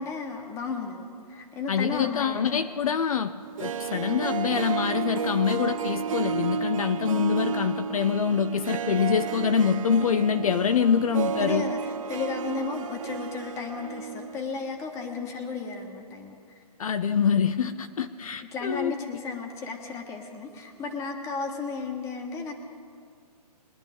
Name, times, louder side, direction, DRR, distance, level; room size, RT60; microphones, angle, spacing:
voice 1, 0.0-2.6 11.4-16.4 18.5-22.6, left 4 dB, 15° left, 3 dB, 1.3 m, -34 dB
voice 2, 1.7-3.3 3.6-11.6 16.8-18.9, left 7 dB, 60° left, 10 dB, 0.6 m, -25 dB
Harp, 3.4-14.4 14.7-14.8, right 7 dB, 55° right, 0.8 m, -32 dB
22.5 x 10.5 x 3.6 m, 2.2 s
hypercardioid pair, 155°, 21 cm